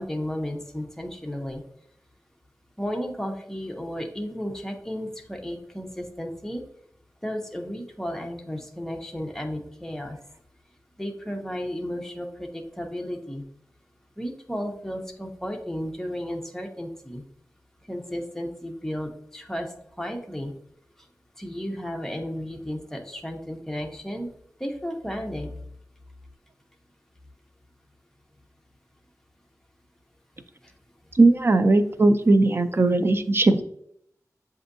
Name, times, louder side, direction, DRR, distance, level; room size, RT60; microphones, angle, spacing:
voice 1, 0.0-1.6 2.8-6.6 7.2-10.2 11.0-13.4 14.2-17.2 17.9-19.7 20.0-20.5 21.4-24.3 24.6-25.5, equal, 5° left, 2 dB, 0.7 m, -33 dB
voice 2, 31.2-33.6, right 2 dB, 40° right, 10 dB, 0.4 m, -18 dB
7.6 x 2.6 x 2.5 m, 0.71 s
wide cardioid pair, 85°, 6 cm